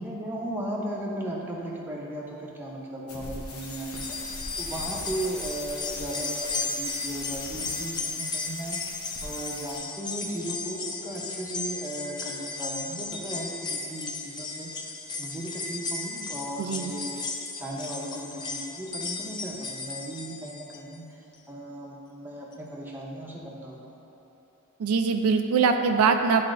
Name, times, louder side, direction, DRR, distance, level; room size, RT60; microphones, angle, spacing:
voice 1, 0.0-14.7 15.2-17.2 17.6-24.0, right 1 dB, 10° right, -4 dB, 0.7 m, -36 dB
sound 1, 3.1-9.8, left 2 dB, 85° left, 1.0 m, -41 dB
sound 2, 3.6-20.9 21.3-21.4 22.5-22.6, left 3 dB, 20° left, 0.4 m, -35 dB
voice 2, 16.6-16.9 24.8-26.4, right 5 dB, 80° right, 6 dB, 0.4 m, -22 dB
11.0 x 4.1 x 2.5 m, 3.0 s
head